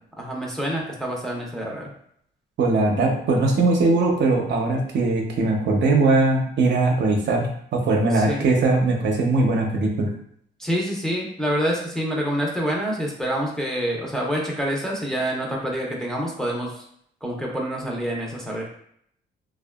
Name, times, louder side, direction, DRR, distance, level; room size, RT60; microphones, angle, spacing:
voice 1, 0.2-1.9 8.1-8.4 10.6-16.8 17.2-18.7, equal, ahead, -2 dB, 0.5 m, -27 dB
voice 2, 2.6-7.5 7.7-10.1, right 2 dB, 60° right, 0 dB, 0.6 m, -20 dB
2.7 x 2.2 x 2.2 m, 0.67 s
cardioid pair, 90°, 20 cm